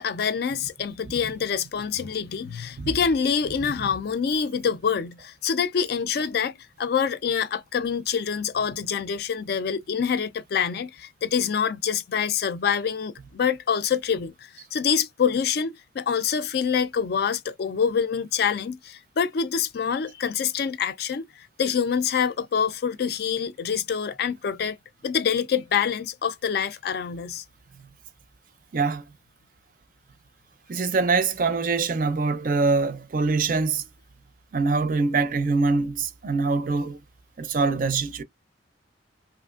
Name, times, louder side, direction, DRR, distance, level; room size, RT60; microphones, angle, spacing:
voice 1, 0.0-24.8 25.0-27.4, left 7 dB, 60° left, 0.4 m, -26 dB
voice 2, 28.7-29.0 30.7-33.8 34.5-37.0 37.4-38.2, right 4 dB, 45° right, 0.5 m, -24 dB
3.0 x 2.5 x 2.3 m
head